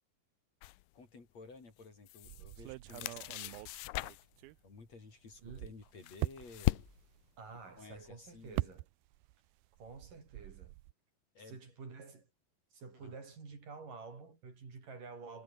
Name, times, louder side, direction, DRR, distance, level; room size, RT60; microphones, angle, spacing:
sound 1, 0.6-0.8 1.8-2.6 2.9-4.4 5.6-7.2, left 20 dB, 90° left, 1.9 m, -38 dB
voice 1, 0.9-3.7 4.6-6.8 7.8-8.8 11.3-11.6 13.0-13.2, left 4 dB, 45° left, 5.9 m, -54 dB
sound 2, 2.2-4.9 5.3-9.4 9.6-10.9, right 19 dB, 85° right, 2.5 m, -43 dB
voice 2, 7.4-8.9 9.8-10.7 11.5-12.3 12.7-15.4, right 4 dB, 60° right, 7.1 m, -50 dB
omnidirectional pair, 4.4 m